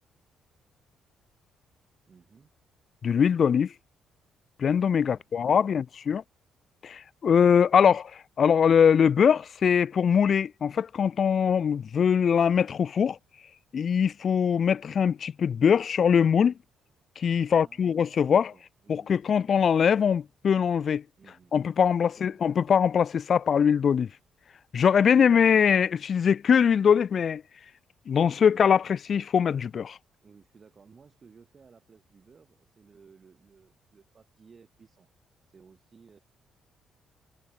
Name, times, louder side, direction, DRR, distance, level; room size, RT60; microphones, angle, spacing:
voice 1, 2.1-2.5 5.0-5.8 17.5-19.6 21.2-21.6 21.8-22.4 25.0-25.4 28.3-28.6 30.2-35.1 35.5-36.2, right 5 dB, 40° right, 6.4 m, -57 dB
voice 2, 3.0-3.7 4.6-6.2 6.8-8.1 8.4-13.2 13.7-16.5 17.2-18.5 18.9-21.0 21.5-24.1 24.7-27.4 28.1-30.0, left 7 dB, 50° left, 0.4 m, -22 dB
cardioid pair, 90°, 0 cm